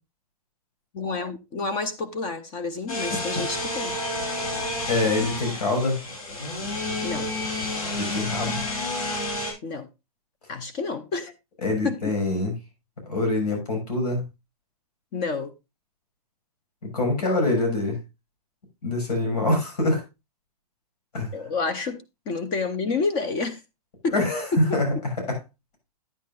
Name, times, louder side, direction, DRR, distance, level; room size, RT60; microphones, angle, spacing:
voice 1, 0.9-3.9 7.0-7.3 9.6-9.9 10.5-11.3 11.8-12.0 15.1-15.5 19.3-19.4 21.3-23.6 24.0-24.1 24.5-24.6, left 4 dB, 25° left, 0.7 m, -29 dB
sound 1, 2.9-9.5, left 2 dB, 65° left, 5.3 m, -30 dB
voice 2, 4.9-6.0 7.9-8.6 11.6-12.5 13.1-14.2 16.9-18.0 18.8-20.0 21.1-21.3 24.1-25.0 25.3-25.4, left 2 dB, 80° left, 6.4 m, -24 dB
11.0 x 9.5 x 2.4 m
hypercardioid pair, 160°, 20 cm